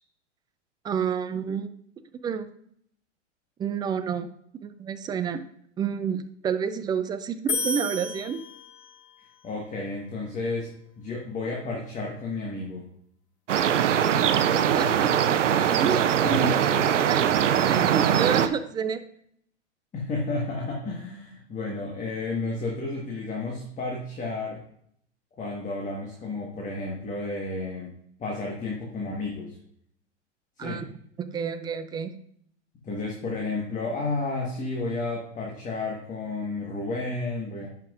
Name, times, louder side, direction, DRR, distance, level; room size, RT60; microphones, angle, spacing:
voice 1, 0.8-1.7 2.2-2.5 3.6-4.3 4.6-5.4 5.8-8.4 14.5-15.1 15.8-16.5 17.1-19.0 30.6-30.8 31.2-32.1, right 7 dB, 10° right, 11 dB, 0.3 m, -29 dB
sound 1, 7.5-9.1, left 3 dB, 45° left, 1.8 m, -31 dB
voice 2, 9.4-12.9 16.2-16.6 19.9-24.6 25.4-27.9 28.2-29.6 30.6-30.9 32.8-37.7, left 3 dB, 20° left, -1 dB, 1.5 m, -32 dB
sound 2, 13.5-18.5, right 9 dB, 80° right, 0.6 m, -22 dB
10.5 x 5.9 x 2.5 m, 0.68 s
hypercardioid pair, 105°, 36 cm